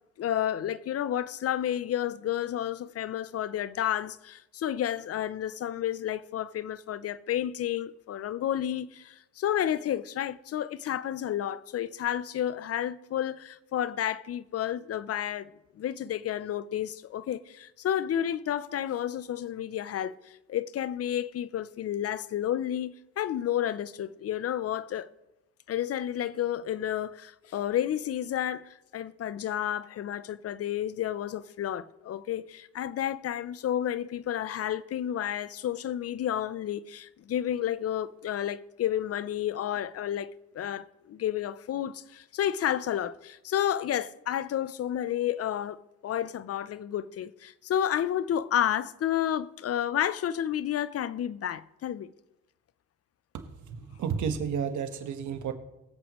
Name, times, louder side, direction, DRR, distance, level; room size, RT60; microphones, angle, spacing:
voice 1, 0.2-15.5 15.8-25.1 25.7-45.8 46.0-52.1, left 10 dB, 55° left, 0.6 m, -31 dB
voice 2, 53.3-55.5, right 7 dB, 75° right, 1.4 m, -32 dB
23.0 x 7.8 x 3.1 m
cardioid pair, 90°, 30 cm